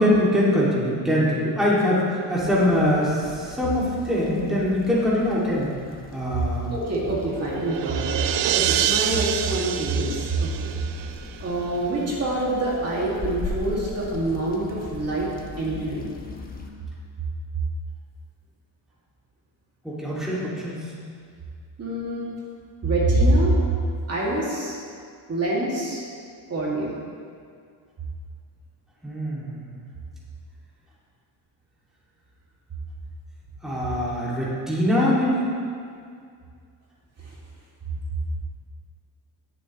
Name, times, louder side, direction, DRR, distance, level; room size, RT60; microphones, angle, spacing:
voice 1, 0.0-5.7 6.1-6.7 19.8-20.9 29.0-29.8 33.6-35.5, left 1 dB, ahead, -8 dB, 2.3 m, -23 dB
sound 1, 2.4-16.7, left 3 dB, 20° left, 1.1 m, -40 dB
voice 2, 6.7-8.1 8.5-10.7 11.4-15.3 15.6-16.1 21.8-22.3 22.8-23.6 24.1-24.8 25.3-26.0 26.5-27.0, right 1 dB, 35° right, -5 dB, 2.3 m, -25 dB
sound 2, 7.0-11.6, right 11 dB, 70° right, 0.6 m, -27 dB
19.0 x 7.2 x 3.1 m, 2.2 s
cardioid pair, 140°, 45 cm